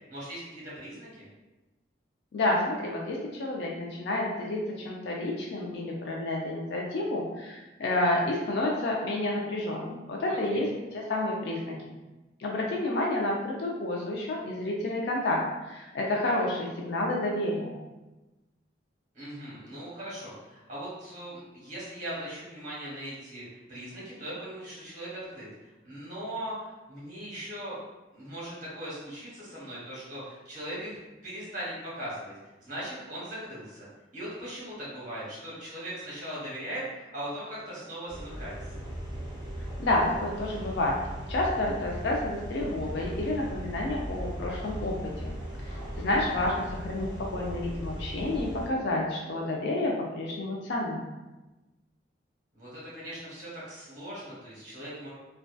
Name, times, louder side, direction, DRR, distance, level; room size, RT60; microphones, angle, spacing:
voice 1, 0.1-1.3 10.3-10.7 19.1-27.8 28.1-31.0 31.2-32.3 32.6-33.9 34.1-38.6 45.6-46.2 52.5-55.1, right 1 dB, 40° right, -8 dB, 1.1 m, -39 dB
voice 2, 2.3-11.7 12.4-15.4 15.7-17.8 39.8-41.0 41.3-45.4 46.0-51.0, left 1 dB, 55° left, -2 dB, 0.3 m, -30 dB
sound 1, 38.1-48.7, equal, 20° right, 0.5 m, -38 dB
2.5 x 2.2 x 2.2 m, 1.1 s
head